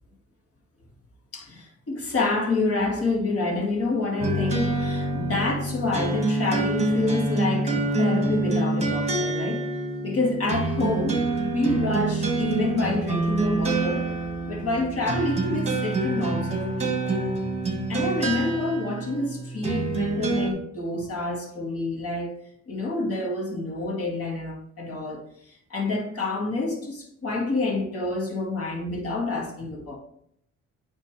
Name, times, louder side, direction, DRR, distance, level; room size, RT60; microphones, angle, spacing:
voice 1, 1.3-9.7 10.0-14.1 14.5-17.2 17.9-22.3 22.7-25.2 25.7-30.0, left 2 dB, 50° left, 2.0 m, -28 dB
sound 1, 4.2-20.5, right 2 dB, 20° right, 1.4 m, -26 dB
9.2 x 3.3 x 3.2 m
cardioid pair, 90°, 30 cm